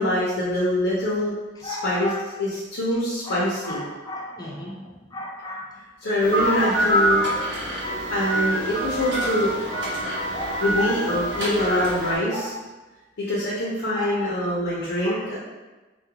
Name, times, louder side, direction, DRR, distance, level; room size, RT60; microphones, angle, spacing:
voice 1, 0.0-1.3 1.6-2.1 2.4-3.8 6.0-7.2 8.1-9.5 10.6-12.5 13.2-15.4, left 1 dB, 70° left, -7 dB, 0.6 m, -24 dB
voice 2, 1.6-2.2 3.2-5.6 6.6-7.1 10.3-11.0 12.3-12.5 14.0-14.2 15.0-15.2, left 2 dB, 20° left, -4 dB, 0.5 m, -34 dB
sound 1, 6.2-12.2, equal, 75° right, 0.9 m, -25 dB
2.3 x 2.2 x 2.8 m, 1.2 s
head